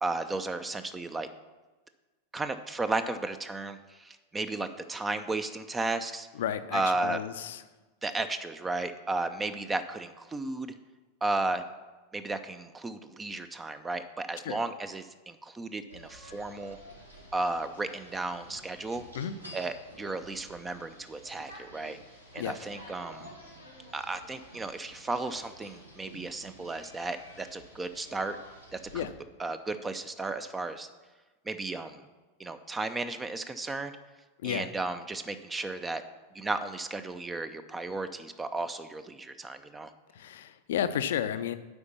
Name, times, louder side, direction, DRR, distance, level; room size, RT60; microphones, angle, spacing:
voice 1, 0.0-1.3 2.3-6.3 6.7-7.2 8.0-10.7 11.2-11.6 12.1-16.8 17.3-19.1 19.5-22.0 22.3-23.3 23.9-28.4 28.7-29.1 29.4-30.9 31.5-32.0 32.4-33.9 34.4-36.0 36.3-39.9, right 2 dB, 15° right, 11 dB, 0.5 m, -34 dB
voice 2, 6.3-7.6 14.4-14.6 19.1-19.3 22.4-22.6 28.9-29.1 34.4-34.7 40.1-41.5, left 10 dB, 60° left, 12 dB, 0.5 m, -32 dB
sound 1, 15.9-29.1, equal, 85° right, 1.8 m, -50 dB
8.0 x 5.1 x 7.0 m, 1.2 s
figure-of-eight pair, 90°, 0 cm